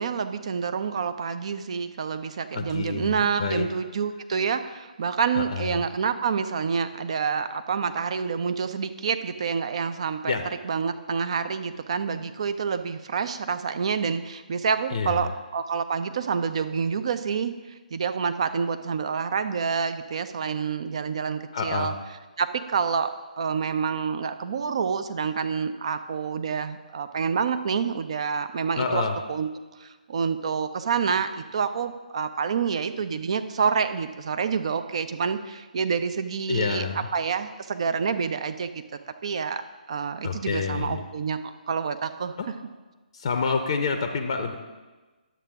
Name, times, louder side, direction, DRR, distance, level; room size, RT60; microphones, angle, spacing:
voice 1, 0.0-10.4 10.6-17.5 17.9-21.9 22.4-23.1 23.4-29.0 29.3-29.5 29.8-38.8 39.2-39.6 39.9-42.4, right 6 dB, 45° right, 10 dB, 0.5 m, -28 dB
voice 2, 2.5-3.1 3.4-3.7 5.3-5.8 10.2-10.4 14.9-15.3 21.5-22.0 28.8-29.2 36.5-37.1 40.2-41.0 42.4-42.5 43.1-44.6, left 5 dB, 40° left, 5 dB, 0.6 m, -28 dB
10.0 x 7.1 x 3.5 m, 1.3 s
figure-of-eight pair, 135°, 5 cm